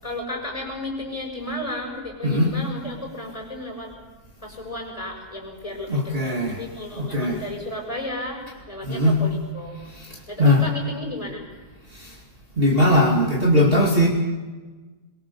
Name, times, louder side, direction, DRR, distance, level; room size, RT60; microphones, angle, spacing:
voice 1, 0.0-3.9 4.4-8.4 8.7-9.8 10.3-11.4, left 1 dB, 20° left, 0 dB, 5.9 m, -33 dB
voice 2, 2.2-2.6 5.9-6.6 7.0-7.5 8.8-9.2 9.8-10.7 11.9-12.2 12.6-14.1, left 1 dB, 35° right, -1 dB, 2.6 m, -20 dB
23.0 x 22.5 x 7.0 m, 1.3 s
omnidirectional pair, 1.8 m